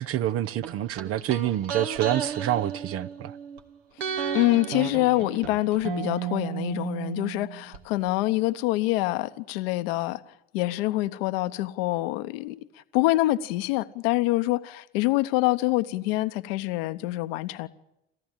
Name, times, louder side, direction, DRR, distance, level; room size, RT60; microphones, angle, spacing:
voice 1, 0.0-3.3, right 12 dB, 50° right, 0.8 m, -27 dB
sound 1, 0.6-3.6 4.0-7.8 8.1-8.2, right 8 dB, 75° right, 1.7 m, -33 dB
voice 2, 4.3-10.2 10.5-12.6 12.9-17.7, left 18 dB, 70° left, 1.1 m, -25 dB
27.5 x 14.5 x 9.0 m
hypercardioid pair, 75°, 30 cm